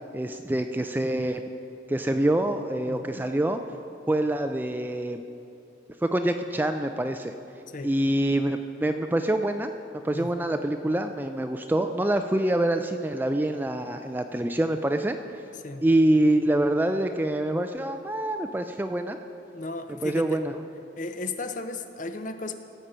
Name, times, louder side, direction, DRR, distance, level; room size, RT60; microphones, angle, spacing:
voice 1, 0.1-1.4 1.9-3.6 4.1-5.2 6.0-7.3 7.8-9.7 10.0-15.2 15.8-19.2 20.0-20.5, right 1 dB, 10° right, 7 dB, 0.3 m, -25 dB
voice 2, 2.8-3.3 7.7-7.9 10.1-10.5 15.6-15.8 19.5-20.4 21.0-22.5, left 3 dB, 40° left, 8 dB, 0.6 m, -35 dB
15.5 x 7.4 x 5.5 m, 2.6 s
head